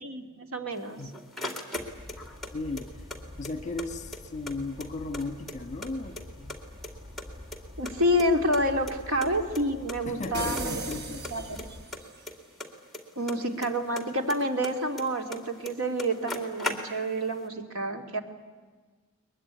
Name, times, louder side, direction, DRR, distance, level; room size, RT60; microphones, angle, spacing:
voice 1, 0.0-1.0 7.8-10.8 11.3-11.6 13.2-18.2, equal, 80° right, 5 dB, 2.5 m, -28 dB
sound 1, 0.8-2.5 2.8-3.9 4.1-4.2 4.5-5.9 6.2-6.9 7.2-8.6 8.9-9.0 9.2-9.3 9.6-9.7 9.9-10.3 10.6-11.0 11.2-13.7 14.0-15.4 15.7-15.8 16.0-17.2, left 1 dB, ahead, 2.5 m, -37 dB
Bird vocalization bird call bird song, 1.7-11.8, left 1 dB, 30° right, 1.8 m, -46 dB
voice 2, 2.5-2.9 3.4-6.5 10.0-11.2, left 3 dB, 35° left, 9 dB, 1.4 m, -36 dB
sound 2, 10.3-12.2, right 2 dB, 50° right, 1.4 m, -36 dB
22.5 x 21.5 x 9.6 m, 1.4 s
head